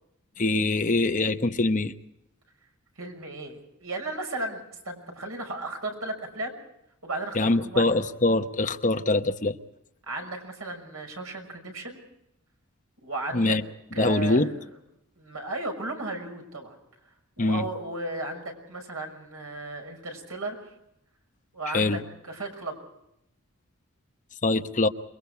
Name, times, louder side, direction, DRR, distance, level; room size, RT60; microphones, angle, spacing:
voice 1, 0.4-1.9 7.3-9.5 13.3-13.6 14.0-14.5 17.4-17.7 21.7-22.0 24.4-24.9, left 2 dB, 35° left, 7 dB, 1.0 m, -23 dB
voice 2, 3.0-6.6 7.0-7.9 10.1-12.0 13.0-13.6 13.9-14.5 15.2-16.8 17.4-20.7 21.5-22.8, right 2 dB, 80° right, 3 dB, 6.2 m, -35 dB
28.5 x 22.0 x 4.8 m, 0.81 s
head